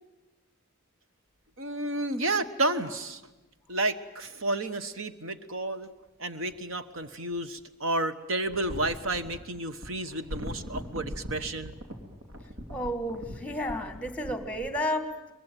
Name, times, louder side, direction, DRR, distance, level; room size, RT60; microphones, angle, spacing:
voice 1, 1.6-3.2 3.7-5.9 6.2-11.8, right 2 dB, 70° right, 10 dB, 1.2 m, -31 dB
sound 1, 6.4-7.6 8.4-14.8, equal, 85° right, 3.2 m, -41 dB
voice 2, 12.7-15.3, left 1 dB, 5° left, 8 dB, 1.7 m, -32 dB
23.5 x 21.5 x 9.2 m, 1.1 s
head